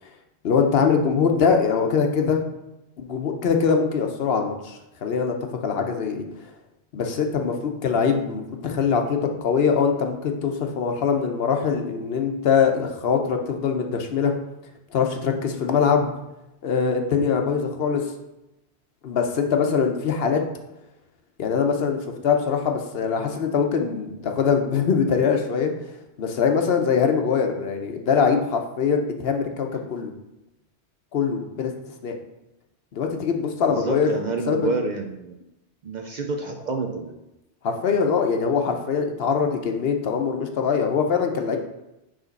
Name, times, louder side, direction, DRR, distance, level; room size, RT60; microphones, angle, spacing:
voice 1, 0.4-2.4 3.0-5.4 5.6-6.2 6.9-14.3 14.9-16.1 16.6-18.1 19.0-20.4 21.4-25.7 26.2-30.1 31.1-31.7 32.0-32.1 32.9-34.1 34.5-34.7 37.6-41.6, left 6 dB, 65° left, 4 dB, 0.9 m, -22 dB
voice 2, 33.6-35.3 35.8-37.2, right 4 dB, 55° right, 4 dB, 0.5 m, -28 dB
5.0 x 3.6 x 5.2 m, 0.92 s
omnidirectional pair, 1.1 m